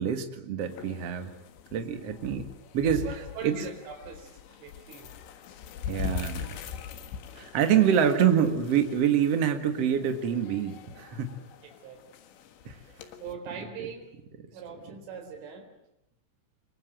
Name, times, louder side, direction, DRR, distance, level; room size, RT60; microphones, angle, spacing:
voice 1, 0.0-1.4 1.7-2.5 2.7-3.1 3.4-3.6 5.9-6.6 7.4-11.4 12.7-12.8, right 8 dB, 50° right, 8 dB, 1.9 m, -26 dB
sound 1, 0.6-13.3, left 7 dB, 70° left, 3.7 m, -42 dB
voice 2, 2.8-5.1 7.7-8.0 11.6-12.0 13.2-14.1 14.5-15.7, right 6 dB, 80° right, 4 dB, 6.5 m, -41 dB
25.0 x 23.0 x 7.7 m, 0.84 s
omnidirectional pair, 5.5 m